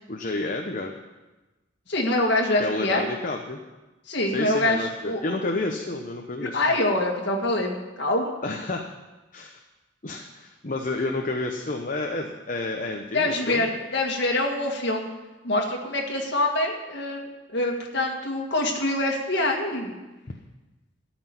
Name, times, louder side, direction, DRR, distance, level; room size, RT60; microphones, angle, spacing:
voice 1, 0.1-1.0 2.6-3.6 4.3-6.8 8.4-8.9 9.3-9.6 10.0-13.7, left 2 dB, 45° left, 2 dB, 1.0 m, -30 dB
voice 2, 1.9-3.1 4.1-5.4 6.5-8.3 13.1-15.1 15.4-20.0, left 1 dB, 60° left, 0 dB, 1.9 m, -25 dB
13.5 x 6.1 x 9.5 m, 1.1 s
head